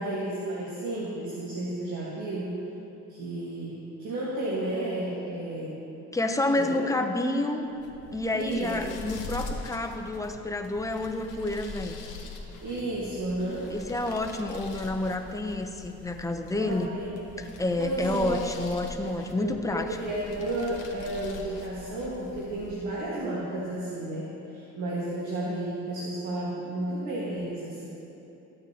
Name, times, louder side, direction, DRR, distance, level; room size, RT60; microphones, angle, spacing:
voice 1, 0.0-2.5 3.1-5.8 6.5-6.7 8.3-8.8 12.6-13.7 16.5-17.2 17.8-18.5 19.4-27.9, right 1 dB, 80° right, -7 dB, 1.6 m, -32 dB
voice 2, 6.1-7.7 8.1-12.0 13.7-16.9 17.4-19.9 25.5-25.6, left 2 dB, 10° left, 4 dB, 0.7 m, -29 dB
sound 1, 7.7-23.2, left 3 dB, 80° left, 1.4 m, -43 dB
13.5 x 8.8 x 2.9 m, 3.0 s
cardioid pair, 90°, 30 cm